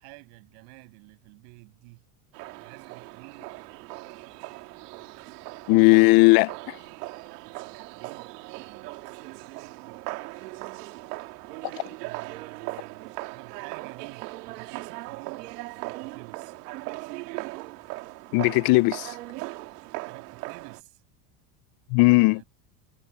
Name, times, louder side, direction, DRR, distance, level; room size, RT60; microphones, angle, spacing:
voice 1, 0.0-2.0 2.6-3.5 7.4-10.2 11.1-11.3 12.0-16.5 20.0-21.0 22.1-22.4, right 33 dB, 75° right, 6.6 m, -50 dB
sound 1, 2.3-20.8, right 22 dB, 90° right, 2.4 m, -39 dB
voice 2, 5.7-6.8 18.3-19.1 21.9-22.4, left 25 dB, 50° left, 0.5 m, -18 dB
supercardioid pair, 135°, 46 cm